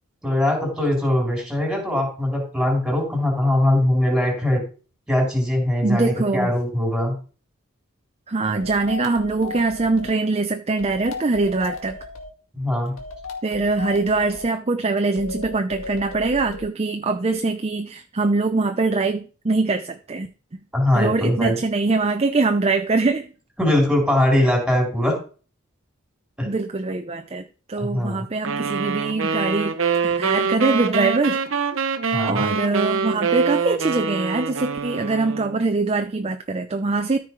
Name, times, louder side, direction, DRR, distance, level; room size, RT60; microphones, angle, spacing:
voice 1, 0.2-4.6 5.1-7.1 12.5-12.9 20.7-21.6 23.6-25.2 26.4-26.5 27.8-28.2 32.1-32.4, left 1 dB, 5° right, 0 dB, 3.9 m, -21 dB
voice 2, 5.8-6.5 8.3-12.1 13.4-20.6 20.9-23.3 26.4-29.8 30.0-31.4 32.2-37.2, right 3 dB, 30° right, 7 dB, 0.6 m, -23 dB
sound 1, 8.6-10.2 10.8-12.3 13.0-14.5 15.1-16.7, left 3 dB, 75° left, 1.9 m, -36 dB
sound 2, 28.4-35.6, right 5 dB, 70° right, 0.9 m, -24 dB
13.5 x 4.7 x 4.7 m, 0.38 s
head